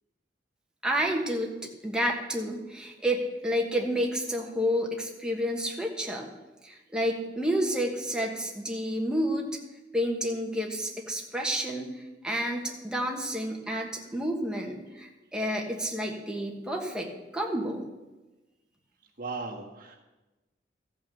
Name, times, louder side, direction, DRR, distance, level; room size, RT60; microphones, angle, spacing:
voice 1, 0.8-6.3 6.6-9.5 9.9-12.0 12.2-17.9, equal, 5° right, 0 dB, 1.4 m, -30 dB
voice 2, 19.2-20.0, right 3 dB, 50° right, 0 dB, 1.7 m, -36 dB
14.0 x 5.8 x 6.9 m, 1.1 s
head